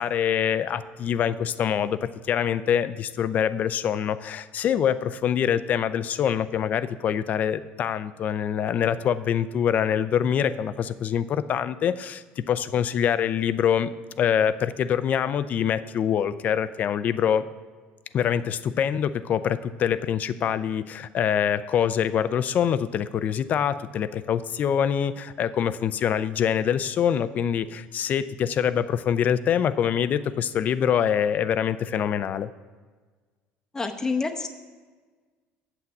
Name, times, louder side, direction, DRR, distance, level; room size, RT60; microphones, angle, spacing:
voice 1, 0.0-17.4 18.1-32.5, left 8 dB, 45° left, 14 dB, 0.4 m, -25 dB
voice 2, 33.7-34.5, left 4 dB, 15° left, 5 dB, 0.8 m, -27 dB
7.9 x 5.9 x 7.7 m, 1.4 s
cardioid pair, 125°, 4 cm